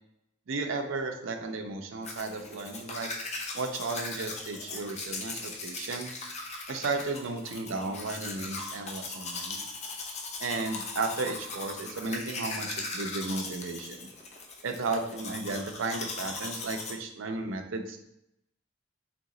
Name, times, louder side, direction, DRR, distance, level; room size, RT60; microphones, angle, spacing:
voice 1, 0.5-3.1 3.5-6.1 6.7-9.6 10.4-14.1 14.6-18.0, right 3 dB, 75° right, 5 dB, 0.5 m, -34 dB
Domestic sounds home sounds, 2.0-16.9, left 3 dB, 35° left, 0.6 m, -39 dB
3.5 x 3.0 x 3.7 m, 0.81 s
head